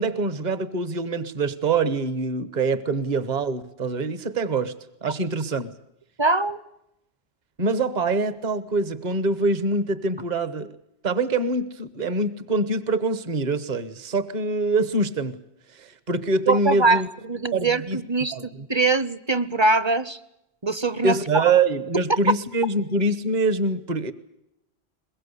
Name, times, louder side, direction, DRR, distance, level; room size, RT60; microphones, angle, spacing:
voice 1, 0.0-4.7 5.0-5.7 7.6-10.7 11.0-15.4 15.7-17.1 17.5-18.0 18.3-18.7 21.0-24.1, right 3 dB, 40° right, 1.2 m, -24 dB
voice 2, 6.2-6.6 16.5-20.2 20.6-21.4, right 3 dB, 25° right, 0.9 m, -23 dB
22.0 x 22.0 x 8.3 m
omnidirectional pair, 1.1 m